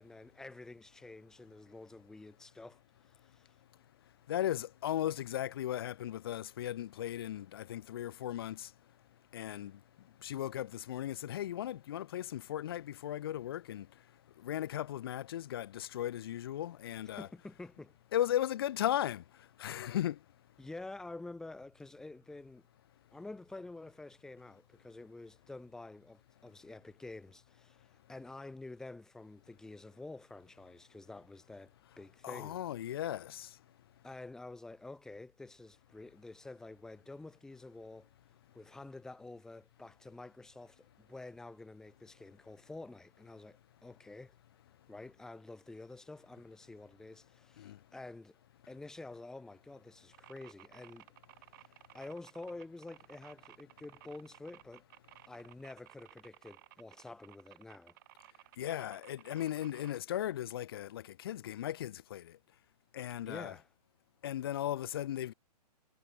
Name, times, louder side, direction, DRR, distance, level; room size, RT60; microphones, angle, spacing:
voice 1, 0.0-3.5 17.1-18.0 20.6-22.6 23.1-32.6 34.0-38.1 38.5-44.4 44.9-48.4 48.7-51.1 51.9-54.8 55.3-58.0 63.2-63.7, left 2 dB, 5° left, 3.4 m, -49 dB
voice 2, 4.3-17.3 18.1-20.2 32.2-33.6 47.6-47.9 58.6-62.4 62.9-63.5 64.2-65.3, left 12 dB, 35° left, 1.3 m, -37 dB
sound 1, 50.1-60.0, right 18 dB, 30° right, 6.9 m, -57 dB
hypercardioid pair, 165°, 21 cm